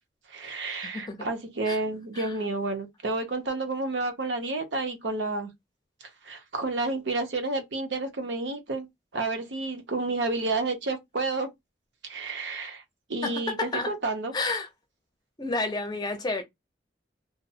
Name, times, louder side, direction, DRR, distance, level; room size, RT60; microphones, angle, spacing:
voice 1, 0.3-5.5 6.2-8.9 9.1-11.5 12.0-12.8 13.1-14.3, right 3 dB, 85° right, 0.7 m, -30 dB
voice 2, 0.8-1.3 1.7-1.8 2.1-2.4 13.2-13.9 14.3-14.7 15.4-16.4, left 3 dB, 25° left, 0.6 m, -30 dB
2.5 x 2.0 x 2.6 m
head